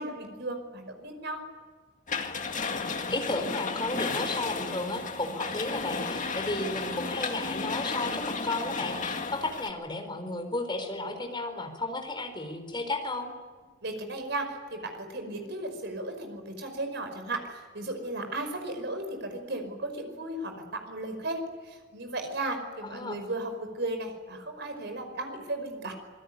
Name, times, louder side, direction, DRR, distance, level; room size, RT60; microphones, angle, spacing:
voice 1, 0.0-1.4 13.8-25.9, right 2 dB, 60° right, 6 dB, 5.3 m, -35 dB
sound 1, 2.1-9.7, left 4 dB, 40° left, 2.1 m, -33 dB
voice 2, 3.1-13.3 22.8-23.2, left 2 dB, 25° left, 4 dB, 4.4 m, -33 dB
27.0 x 21.5 x 9.7 m, 1.5 s
head